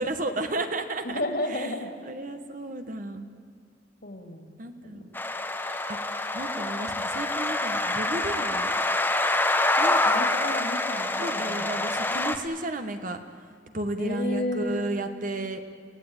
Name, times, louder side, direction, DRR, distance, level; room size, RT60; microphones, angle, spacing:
voice 1, 0.0-1.2 1.5-1.7 2.0-3.3 4.6-5.1 5.9-6.0 6.3-8.7 9.8-10.0 11.2-13.2 13.7-15.6, right 1 dB, 45° right, 7 dB, 1.4 m, -33 dB
voice 2, 1.0-1.9 4.0-4.5 4.8-5.0 10.0-11.7 14.0-14.9, left 1 dB, 55° left, 5 dB, 2.9 m, -32 dB
sound 1, 5.1-12.4, left 2 dB, 10° left, 1.1 m, -26 dB
28.0 x 17.5 x 9.0 m, 2.1 s
head